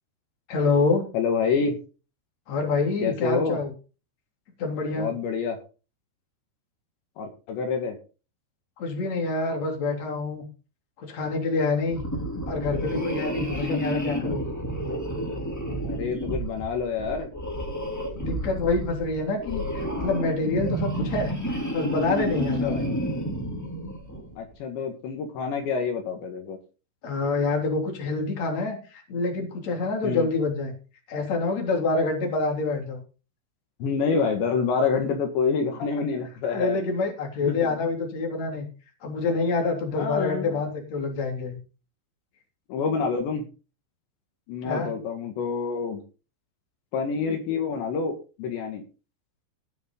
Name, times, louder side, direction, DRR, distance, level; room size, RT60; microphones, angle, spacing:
voice 1, 0.5-1.0 2.5-3.7 4.6-5.1 8.8-10.4 11.0-12.0 12.5-14.4 18.2-21.3 21.7-23.0 27.0-30.7 31.1-33.0 36.5-38.7 39.0-41.6 44.6-44.9, left 3 dB, 40° left, 2 dB, 4.1 m, -26 dB
voice 2, 1.1-1.7 3.0-3.6 5.0-5.6 7.2-8.0 13.6-13.9 15.8-17.3 22.6-22.8 24.4-26.6 30.0-30.3 33.8-36.8 37.4-37.8 39.9-40.6 42.7-43.5 44.5-46.0 46.9-48.8, left 5 dB, 70° left, 4 dB, 4.1 m, -27 dB
sound 1, 11.9-24.4, equal, 5° left, 1.4 m, -30 dB
19.0 x 6.8 x 3.8 m, 0.33 s
omnidirectional pair, 5.4 m